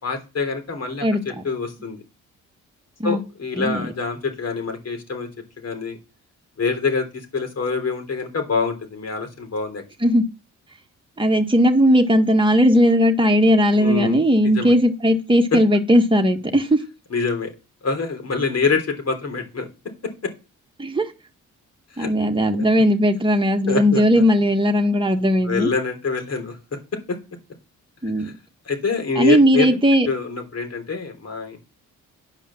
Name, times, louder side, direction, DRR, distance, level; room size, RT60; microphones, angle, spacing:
voice 1, 0.0-2.0 3.0-5.3 5.6-6.0 6.6-9.8 13.7-14.7 17.1-17.5 17.8-19.7 20.2-20.3 21.9-22.1 22.6-22.7 23.7-24.2 25.4-26.6 27.1-27.2 28.2-28.3 28.6-29.8 30.0-31.7, left 4 dB, 50° left, 3.5 m, -25 dB
voice 2, 11.2-16.8 20.8-21.1 22.0-25.7 28.0-28.3 29.2-30.1, equal, 15° right, 1.7 m, -17 dB
10.0 x 5.3 x 7.2 m
supercardioid pair, 60°, 32 cm